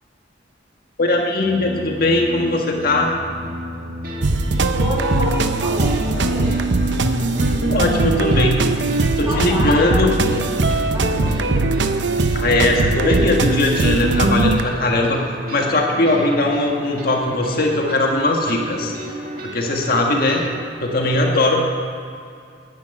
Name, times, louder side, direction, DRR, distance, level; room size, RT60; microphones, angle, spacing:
voice 1, 1.0-3.2 5.2-5.3 7.6-8.7 9.2-10.1 12.3-15.2 15.5-18.9 19.4-20.4 20.8-21.6, left 2 dB, 55° left, 0 dB, 1.6 m, -19 dB
sound 1, 1.4-20.7, equal, 50° right, 2.3 m, -33 dB
sound 2, 4.2-14.6, right 2 dB, 75° right, 0.8 m, -20 dB
voice 2, 4.7-6.7 9.1-11.8, equal, 15° right, -5 dB, 4.2 m, -29 dB
11.5 x 10.5 x 9.1 m, 2.3 s
head